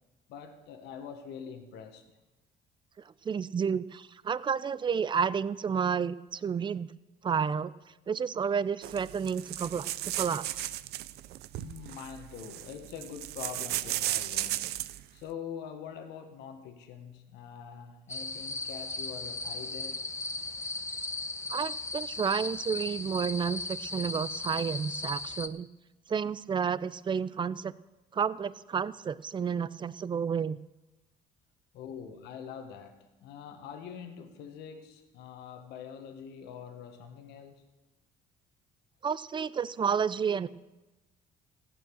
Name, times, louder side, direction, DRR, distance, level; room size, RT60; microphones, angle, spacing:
voice 1, 0.3-2.0 11.5-14.7 15.1-20.1 31.7-37.6, left 7 dB, 85° left, 6 dB, 1.5 m, -44 dB
voice 2, 3.2-6.9 7.2-7.7 8.1-10.7 21.5-25.7 26.1-27.7 28.1-30.6 39.0-40.5, right 6 dB, 30° right, 17 dB, 0.5 m, -31 dB
sound 1, 8.8-15.0, right 15 dB, 75° right, 0.5 m, -35 dB
sound 2, 18.1-25.5, left 3 dB, 15° left, 0.8 m, -37 dB
15.0 x 9.1 x 6.3 m, 1.0 s
cardioid pair, 110°, 17 cm